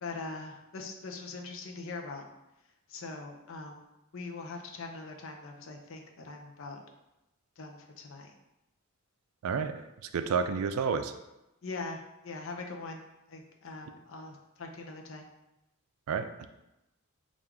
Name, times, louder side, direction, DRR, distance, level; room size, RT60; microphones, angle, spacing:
voice 1, 0.0-2.3 2.9-3.8 4.1-6.8 7.6-8.3 11.6-13.0 13.3-15.3, left 3 dB, 60° left, 2 dB, 0.6 m, -42 dB
voice 2, 9.4-11.1 16.1-16.5, right 6 dB, 75° right, 9 dB, 0.3 m, -31 dB
4.4 x 2.5 x 3.6 m, 0.94 s
head